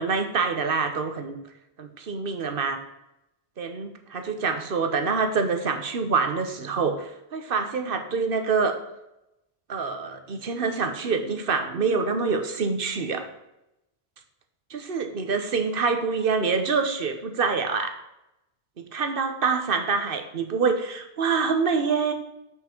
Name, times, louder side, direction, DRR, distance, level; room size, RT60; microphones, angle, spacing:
voice 1, 0.0-1.4 1.8-2.8 3.6-8.8 9.7-13.3 14.7-18.0 18.9-22.1, right 5 dB, 60° right, 7 dB, 1.1 m, -26 dB
7.8 x 5.9 x 4.5 m, 0.90 s
omnidirectional pair, 1.0 m